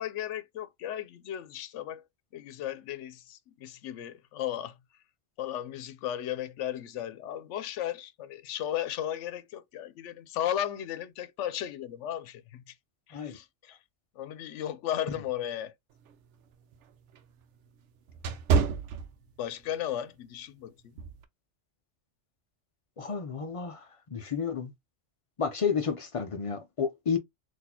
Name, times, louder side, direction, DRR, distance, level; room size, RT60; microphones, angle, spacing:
voice 1, 0.0-2.1 2.3-4.7 5.4-12.7 13.1-13.8 14.2-15.7 19.4-20.9, left 11 dB, 85° left, 0.9 m, -35 dB
sound 1, 16.0-19.7 20.1-20.4 21.0-21.2, right 5 dB, 85° right, 0.9 m, -29 dB
voice 2, 23.0-24.7 25.4-27.2, left 6 dB, 50° left, 0.4 m, -31 dB
4.0 x 2.6 x 2.8 m
omnidirectional pair, 1.2 m